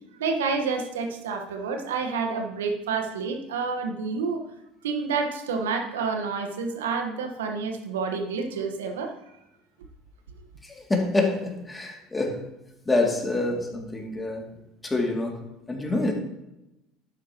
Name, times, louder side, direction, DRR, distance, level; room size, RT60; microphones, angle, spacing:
voice 1, 0.2-4.4 4.8-9.2, right 5 dB, 80° right, 5 dB, 1.4 m, -29 dB
voice 2, 10.6-12.5 12.9-14.5 14.8-16.1, left 2 dB, 15° left, 1 dB, 2.7 m, -27 dB
12.0 x 9.1 x 3.0 m, 0.91 s
hypercardioid pair, 70°, 0 cm